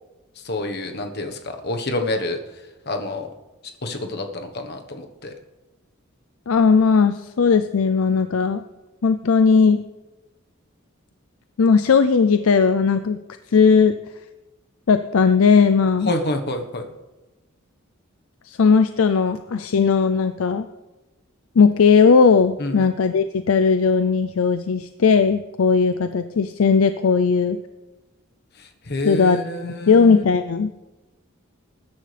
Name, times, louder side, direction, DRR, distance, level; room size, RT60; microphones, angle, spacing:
voice 1, 0.4-2.4 2.9-3.3 3.8-5.3 16.0-16.9 22.6-22.8 28.9-30.2, left 1 dB, 50° left, 5 dB, 1.3 m, -27 dB
voice 2, 6.5-8.6 9.0-9.8 11.6-13.2 13.5-13.9 14.9-16.1 18.5-20.7 21.6-27.6 29.0-30.7, left 5 dB, 85° left, 10 dB, 0.5 m, -17 dB
20.0 x 10.5 x 3.4 m, 1.1 s
head